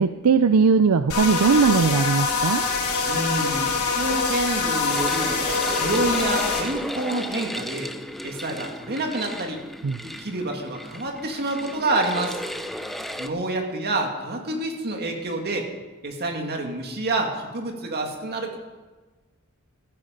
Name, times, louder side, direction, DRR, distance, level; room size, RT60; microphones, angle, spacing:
voice 1, 0.0-2.6 9.8-10.0, right 5 dB, 80° right, 11 dB, 0.5 m, -19 dB
sound 1, 1.1-6.6, left 4 dB, 80° left, 3.3 m, -24 dB
voice 2, 3.1-5.3 5.7-7.9 8.2-9.6 10.0-12.4 13.2-15.7 16.0-18.6, right 2 dB, 45° right, 2 dB, 2.3 m, -28 dB
sound 2, 4.9-13.3, equal, ahead, 0.7 m, -34 dB
15.0 x 13.5 x 5.2 m, 1.3 s
head